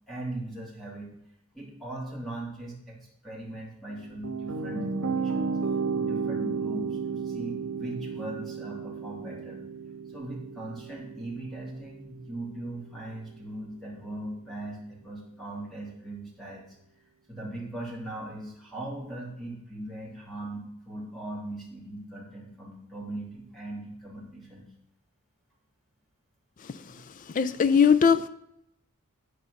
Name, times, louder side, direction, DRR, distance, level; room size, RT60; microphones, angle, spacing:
voice 1, 0.1-1.1 1.5-3.0 3.2-5.6 5.9-9.6 10.1-16.7 17.3-24.7 26.8-27.0, right 1 dB, ahead, -5 dB, 2.7 m, -39 dB
sound 1, 3.9-13.0, right 5 dB, 85° right, 1.5 m, -33 dB
voice 2, 27.3-28.3, left 6 dB, 35° left, 13 dB, 0.4 m, -20 dB
9.8 x 5.0 x 6.4 m, 0.79 s
head